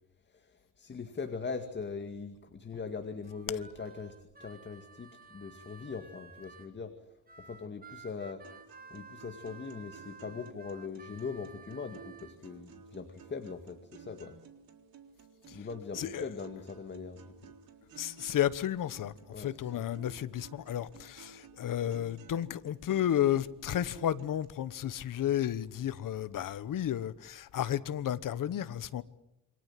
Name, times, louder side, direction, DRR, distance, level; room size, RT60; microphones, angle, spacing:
voice 1, 0.3-6.9 7.4-8.4 8.9-14.3 15.4-17.5 19.3-19.8, left 5 dB, 30° left, 2.2 m, -41 dB
Harmonica, 3.2-6.7 7.3-12.4, right 5 dB, 25° right, 1.9 m, -53 dB
sound 1, 8.4-24.5, right 7 dB, 65° right, 3.8 m, -54 dB
voice 2, 18.0-29.0, left 11 dB, 60° left, 1.2 m, -32 dB
28.0 x 25.5 x 7.6 m
cardioid pair, 155°, 37 cm